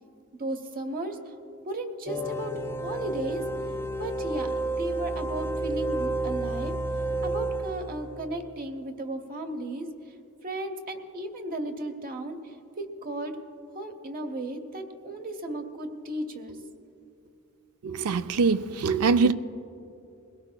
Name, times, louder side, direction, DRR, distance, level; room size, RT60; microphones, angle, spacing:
voice 1, 0.4-1.3 1.7-2.5 2.8-3.4 4.0-6.7 7.2-9.9 10.4-13.4 13.7-16.8, right 1 dB, 40° right, 0.9 m, -35 dB
sound 1, 2.1-8.2, right 2 dB, 10° left, 0.3 m, -31 dB
voice 2, 17.8-19.3, right 4 dB, 80° right, 0.4 m, -23 dB
22.0 x 17.0 x 2.2 m
head